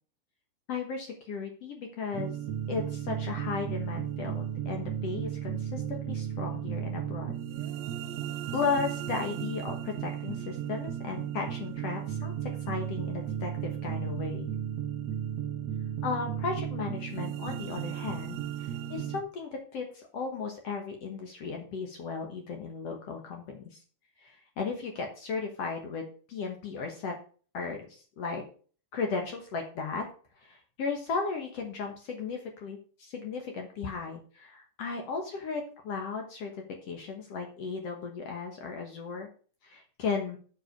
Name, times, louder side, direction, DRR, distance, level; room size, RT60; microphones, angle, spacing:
voice 1, 0.7-2.4 2.7-7.3 8.5-12.3 12.7-14.5 16.0-23.8 24.2-27.2 27.5-28.4 28.9-30.0 30.4-36.5 36.8-39.3 39.6-40.4, left 5 dB, 60° left, 3 dB, 1.8 m, -35 dB
sound 1, 2.1-19.2, right 10 dB, 80° right, 1.5 m, -35 dB
8.0 x 5.9 x 6.5 m, 0.42 s
omnidirectional pair, 4.1 m